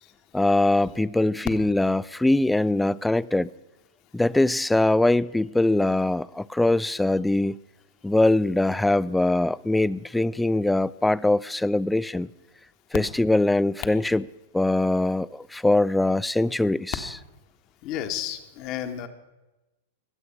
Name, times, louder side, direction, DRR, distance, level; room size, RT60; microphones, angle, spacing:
voice 1, 0.3-3.5 4.1-7.6 8.0-12.3 12.9-14.3 14.5-17.1, left 2 dB, 5° left, 0.4 m, -22 dB
voice 2, 17.8-19.1, left 10 dB, 45° left, 1.6 m, -32 dB
21.0 x 8.3 x 5.7 m
hypercardioid pair, 105°, 0 cm